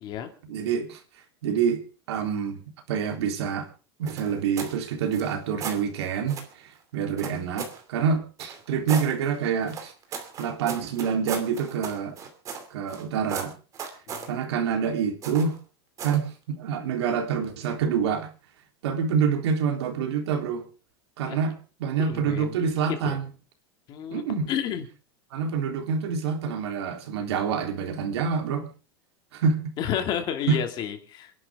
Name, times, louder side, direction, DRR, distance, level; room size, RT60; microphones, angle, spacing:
voice 1, 0.5-1.0 1.4-1.8 2.1-2.6 2.9-3.7 4.0-9.9 10.4-12.2 12.7-13.5 14.3-15.6 16.0-18.3 18.8-20.7 21.2-23.3 24.1-24.5 25.3-28.7 29.3-29.8 30.5-30.6, right 6 dB, 85° right, 3.5 m, -27 dB
sound 1, 4.1-4.8 5.1-5.8 6.3-6.5 7.2-7.8 8.4-9.1 9.7-13.0 13.3-14.3 15.2-15.6 16.0-16.3, right 6 dB, 25° right, 2.7 m, -36 dB
voice 2, 22.0-22.6 22.9-23.2 23.9-24.2 24.5-24.8 29.8-31.3, left 9 dB, 35° left, 2.4 m, -30 dB
28.0 x 11.5 x 3.6 m
supercardioid pair, 165°, 13 cm